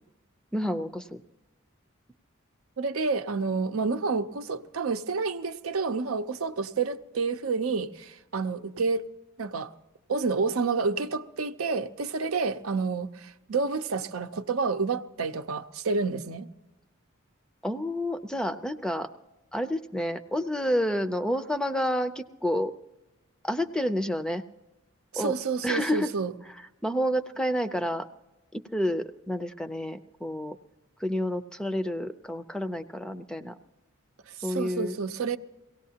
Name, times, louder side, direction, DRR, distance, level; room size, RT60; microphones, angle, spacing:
voice 1, 0.5-1.2 17.6-19.1 19.5-22.7 23.4-24.4 25.2-25.3 25.6-26.1 26.8-28.1 28.5-30.6 31.0-33.5 34.4-34.9, equal, 5° left, 10 dB, 0.5 m, -29 dB
voice 2, 2.8-9.0 9.4-9.7 10.1-16.5 25.1-26.3 34.3-35.4, right 4 dB, 85° right, 9 dB, 0.7 m, -29 dB
23.0 x 17.5 x 2.8 m, 1.1 s
head